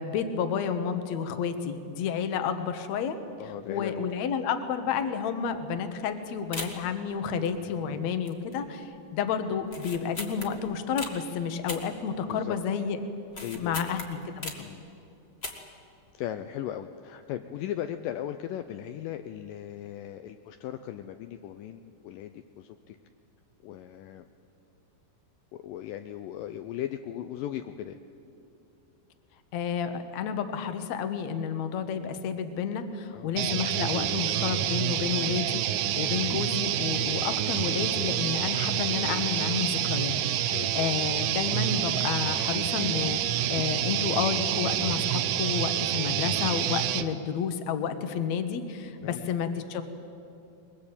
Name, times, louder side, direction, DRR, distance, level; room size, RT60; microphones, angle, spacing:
voice 1, 0.0-3.2 3.7-13.0 13.6-14.5 29.5-49.8, left 7 dB, 60° left, 9 dB, 2.0 m, -31 dB
voice 2, 3.4-4.0 7.4-8.1 12.3-12.6 13.4-14.0 14.6-14.8 16.1-23.0 23.6-24.3 25.5-28.0 33.1-33.3 35.8-36.1 40.5-40.7 49.0-49.2, left 11 dB, 80° left, 8 dB, 1.9 m, -38 dB
sound 1, 5.8-5.9 6.1-6.2 6.5-7.0 7.4-7.9 8.2-8.7 8.9-9.0 9.6-11.2 11.7-12.6 12.9-14.8 15.3-15.8 16.1-16.2, left 2 dB, 30° left, 1.1 m, -39 dB
sound 2, 33.4-47.1, right 12 dB, 75° right, 2.3 m, -28 dB
22.0 x 20.5 x 8.7 m, 2.8 s
omnidirectional pair, 4.6 m